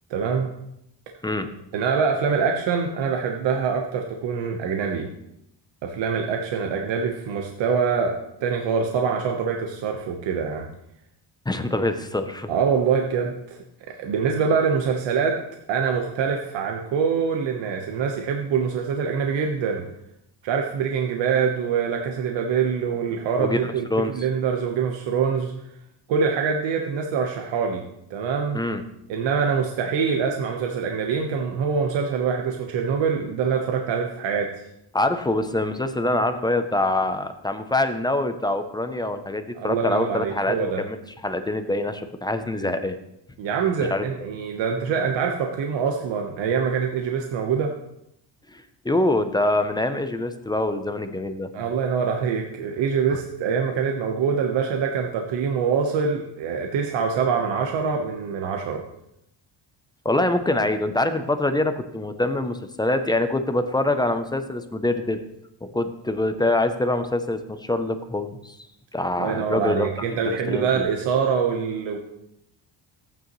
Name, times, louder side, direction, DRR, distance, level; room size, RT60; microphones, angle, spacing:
voice 1, 0.1-0.5 1.7-5.1 5.8-8.1 8.4-10.7 12.5-13.6 13.9-15.4 15.7-19.9 20.4-25.5 26.1-27.8 28.1-28.6 29.1-34.5 39.5-40.8 43.4-47.7 51.5-58.8 69.2-72.0, right 6 dB, 85° right, 2 dB, 1.2 m, -24 dB
voice 2, 11.5-12.5 23.4-24.1 28.5-28.8 34.9-41.0 41.2-43.0 43.9-44.0 48.5-51.5 60.0-65.2 65.7-68.6 68.9-69.9 70.3-70.9, left 2 dB, 10° left, 8 dB, 0.5 m, -24 dB
14.0 x 9.0 x 3.1 m, 0.80 s
cardioid pair, 150°, 43 cm